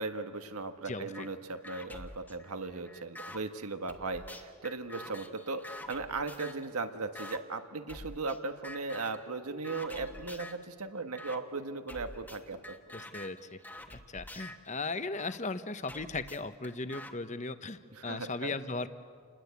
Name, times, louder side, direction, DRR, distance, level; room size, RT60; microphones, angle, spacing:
voice 1, 0.0-13.0 17.9-18.5, right 3 dB, 90° right, 7 dB, 1.6 m, -37 dB
voice 2, 0.9-1.3 12.9-13.6 14.1-18.9, left 3 dB, 35° left, 11 dB, 0.9 m, -37 dB
sound 1, 1.1-1.3 1.6-3.4 3.9-6.7 7.2-7.4 7.9-8.4 8.6-9.2 9.6-10.7 11.2-11.4 11.9-15.4 15.9-17.1, left 1 dB, 10° left, 1.3 m, -47 dB
29.0 x 21.0 x 8.4 m, 2.1 s
head